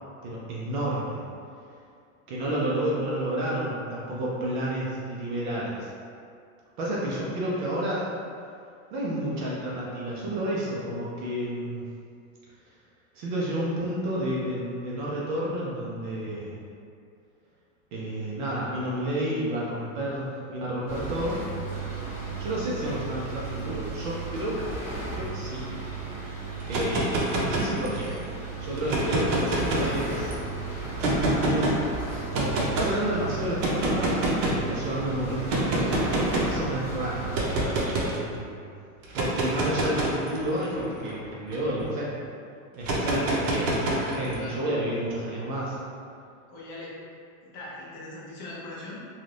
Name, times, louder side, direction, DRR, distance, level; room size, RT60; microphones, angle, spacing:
voice 1, 0.2-1.2 2.3-5.9 6.8-8.0 8.9-11.9 13.1-16.6 17.9-21.5 22.4-24.6 25.1-25.6 26.7-28.2 28.6-30.4 31.4-31.7 32.3-37.3 38.1-38.6 39.1-42.1 42.7-45.8, right 1 dB, 40° right, -6 dB, 0.4 m, -30 dB
sound 1, 20.9-37.6, right 4 dB, 15° right, 1.0 m, -35 dB
sound 2, 26.6-28.2 28.8-30.3 31.0-31.8 32.3-32.9 33.6-34.7 35.5-36.6 37.3-38.2 39.0-41.9 42.8-44.4, right 1 dB, 70° right, 0.7 m, -27 dB
voice 2, 46.5-47.0 47.5-49.0, left 2 dB, 35° left, -6 dB, 0.5 m, -41 dB
2.6 x 2.3 x 3.2 m, 2.4 s
supercardioid pair, 160°, 40 cm